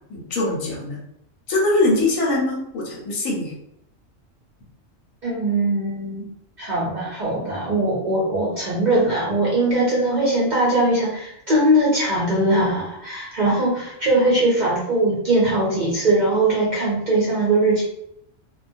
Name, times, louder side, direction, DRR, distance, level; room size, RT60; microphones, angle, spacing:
voice 1, 0.1-1.0 1.5-3.5, left 2 dB, 90° left, -2 dB, 1.1 m, -22 dB
voice 2, 5.2-6.3 6.6-17.8, right 1 dB, 55° right, -6 dB, 0.5 m, -20 dB
2.2 x 2.2 x 2.5 m, 0.78 s
omnidirectional pair, 1.4 m